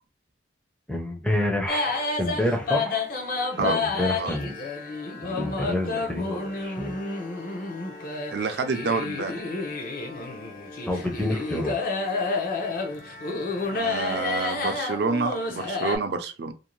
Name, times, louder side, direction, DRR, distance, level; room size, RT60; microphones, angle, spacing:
voice 1, 0.9-3.0 3.6-4.5 5.2-7.0 10.9-11.8, left 1 dB, 5° left, 0.5 m, -28 dB
sound 1, 1.7-16.0, left 3 dB, 50° left, 0.6 m, -30 dB
voice 2, 8.3-9.4 13.7-16.5, right 4 dB, 60° right, 0.4 m, -28 dB
2.6 x 2.2 x 3.0 m
head